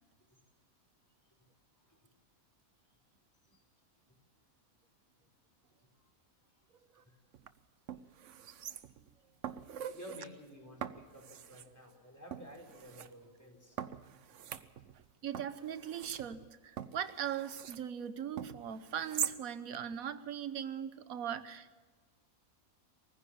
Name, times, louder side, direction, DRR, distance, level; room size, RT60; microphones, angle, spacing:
sound 1, 7.3-7.5 7.9-9.1 9.4-10.2 10.8-11.7 12.3-13.1 13.8-15.1 15.3-17.8 18.4-19.4 19.7-19.8, right 9 dB, 65° right, 1.1 m, -42 dB
voice 1, 9.9-13.8, equal, 10° left, 2 dB, 4.4 m, -52 dB
voice 2, 15.2-21.8, right 9 dB, 90° right, 12 dB, 1.4 m, -40 dB
23.5 x 15.5 x 7.4 m, 1.3 s
omnidirectional pair, 1.5 m